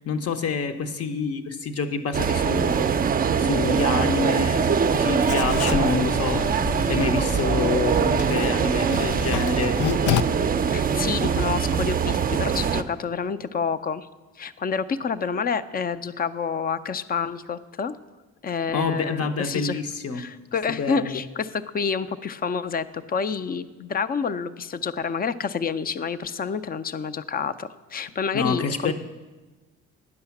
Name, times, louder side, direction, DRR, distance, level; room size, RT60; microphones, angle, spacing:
voice 1, 0.0-6.4 6.8-9.7 18.7-20.3 20.8-21.2 28.3-28.9, left 5 dB, 55° left, 9 dB, 0.9 m, -27 dB
sound 1, 2.1-12.8, right 6 dB, 30° right, 0.4 m, -23 dB
Writing, 5.3-10.2, left 9 dB, 90° left, 0.4 m, -30 dB
voice 2, 10.7-14.1 14.4-18.0 18.4-19.8 20.1-28.9, left 6 dB, 30° left, 15 dB, 0.4 m, -28 dB
9.7 x 5.6 x 7.0 m, 1.2 s
cardioid pair, 90°, 30 cm